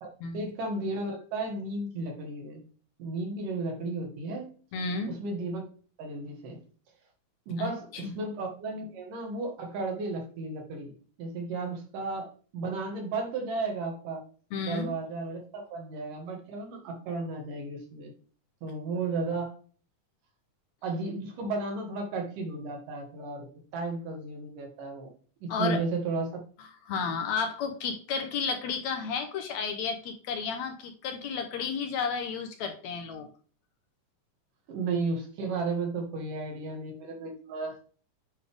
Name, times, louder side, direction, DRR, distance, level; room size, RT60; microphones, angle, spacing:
voice 1, 0.3-2.6 3.0-4.5 5.1-5.6 6.0-6.6 7.5-10.9 11.2-14.2 14.7-18.1 18.6-19.5 20.8-23.5 23.7-25.1 25.4-26.4 34.7-37.8, right 3 dB, 90° right, 1 dB, 3.3 m, -34 dB
voice 2, 4.7-5.2 7.6-8.2 14.5-14.9 25.5-25.8 26.9-33.3, left 5 dB, 70° left, 6 dB, 1.8 m, -32 dB
9.1 x 3.4 x 3.5 m, 0.41 s
omnidirectional pair, 3.6 m